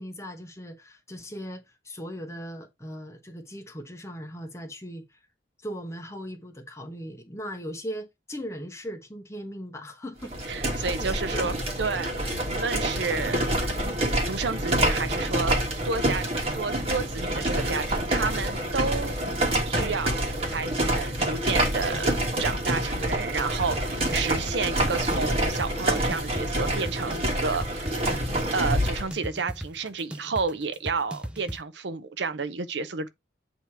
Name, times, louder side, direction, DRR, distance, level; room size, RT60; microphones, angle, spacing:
voice 1, 0.0-5.2 5.6-11.5 13.0-13.3, equal, 15° left, 1.1 m, -39 dB
sound 1, 10.2-29.1, right 1 dB, 30° right, 1.5 m, -27 dB
voice 2, 10.5-13.5 14.3-15.6 15.8-19.2 19.7-20.2 20.5-22.1 22.4-27.9 28.5-33.1, right 4 dB, 70° right, 0.6 m, -31 dB
sound 2, 23.6-31.6, right 1 dB, 5° right, 0.4 m, -38 dB
8.1 x 3.0 x 4.6 m
head